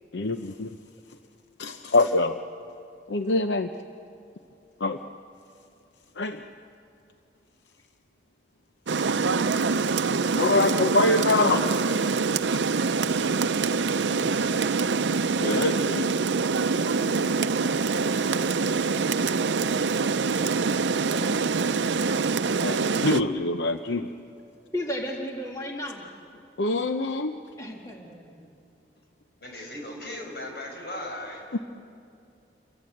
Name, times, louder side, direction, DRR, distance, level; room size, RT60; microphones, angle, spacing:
voice 1, 0.1-0.8 1.6-2.4 3.1-3.7 4.8-5.0 6.2-6.5 10.4-11.7 12.5-12.6 15.4-16.1 22.6-24.1 26.6-27.4 31.5-31.6, left 2 dB, 80° left, 7 dB, 0.7 m, -24 dB
Rain, 8.9-23.2, right 4 dB, 85° right, 0.6 m, -25 dB
voice 2, 16.9-17.4 24.7-26.1 27.6-28.5, equal, 20° left, 0 dB, 1.8 m, -34 dB
voice 3, 29.4-31.4, left 1 dB, 60° left, 1 dB, 6.4 m, -37 dB
29.0 x 23.0 x 8.0 m, 2.6 s
head